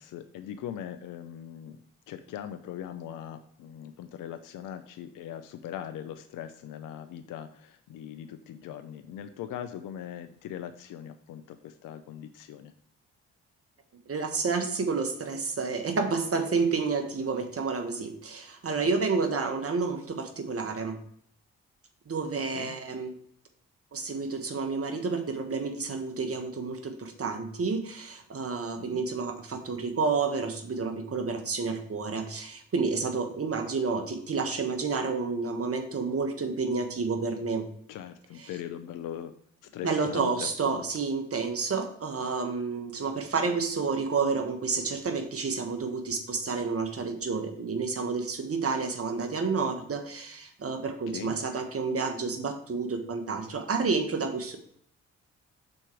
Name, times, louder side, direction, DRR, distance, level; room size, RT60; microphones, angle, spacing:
voice 1, 0.0-12.7 18.7-18.8 22.5-22.7 28.9-29.0 37.9-39.4 39.7-40.9 50.9-51.3, left 10 dB, 70° left, 9 dB, 0.6 m, -40 dB
voice 2, 14.1-21.0 22.1-23.1 23.9-37.7 38.4-38.5 39.8-54.6, right 4 dB, 45° right, 6 dB, 1.4 m, -30 dB
6.3 x 4.4 x 4.4 m, 0.66 s
hypercardioid pair, 45°, 33 cm